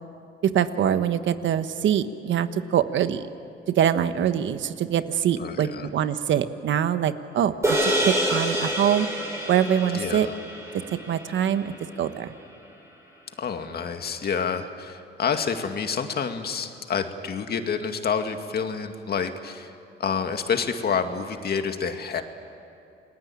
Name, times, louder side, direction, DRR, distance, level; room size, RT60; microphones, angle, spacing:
voice 1, 0.4-3.2 3.7-9.1 9.5-10.3 10.9-12.3, right 9 dB, 70° right, 11 dB, 1.3 m, -24 dB
voice 2, 5.4-5.9 9.9-10.4 13.4-19.7 20.0-22.2, left 6 dB, 50° left, 6 dB, 2.2 m, -28 dB
sound 1, 7.6-12.2, equal, 15° right, 7.2 m, -27 dB
29.0 x 20.5 x 8.7 m, 2.6 s
cardioid pair, 90°, 20 cm